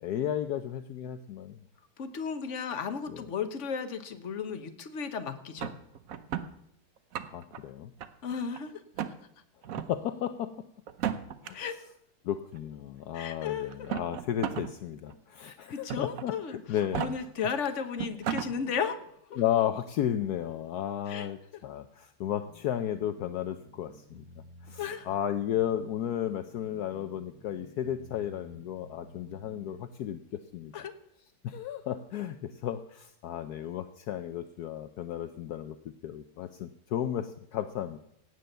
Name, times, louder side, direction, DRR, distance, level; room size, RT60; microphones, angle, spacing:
voice 1, 0.0-1.6 3.1-3.2 7.3-7.9 9.9-10.5 11.4-11.6 12.2-17.2 19.3-24.2 24.6-30.2 30.5-30.7 31.4-35.8 36.0-38.0, left 10 dB, 70° left, 9 dB, 0.9 m, -33 dB
voice 2, 2.0-5.7 8.2-8.8 11.5-11.8 13.1-13.9 15.4-16.6 16.9-19.0 19.3-19.4 21.1-21.3 24.8-25.1 30.7-30.9, left 6 dB, 45° left, 8 dB, 1.1 m, -34 dB
sound 1, 5.6-6.5 7.0-7.6 8.0-8.6 9.0-9.1 9.6-9.9 10.9-11.5 12.6-12.7 13.7-14.7 15.1-15.2 15.9-16.3 16.8-17.1 17.7-17.8 18.0-18.5, right 9 dB, 60° right, 0.9 m, -33 dB
sound 2, 22.5-29.9, right 1 dB, 45° right, 2.2 m, -53 dB
17.0 x 8.5 x 6.7 m, 0.74 s
omnidirectional pair, 2.3 m